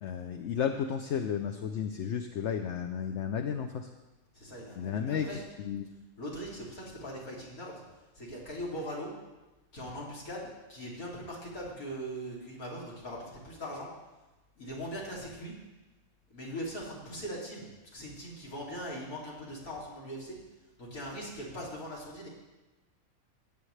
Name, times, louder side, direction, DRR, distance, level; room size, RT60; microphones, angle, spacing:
voice 1, 0.0-3.9 4.8-5.9, left 8 dB, 65° left, 6 dB, 0.8 m, -33 dB
voice 2, 4.3-5.4 6.2-7.8 8.1-9.1 9.7-13.9 14.6-15.5 16.3-17.7 17.9-20.4 20.8-22.3, equal, 85° left, -4 dB, 3.2 m, -40 dB
16.5 x 8.7 x 3.3 m, 1.1 s
omnidirectional pair, 1.5 m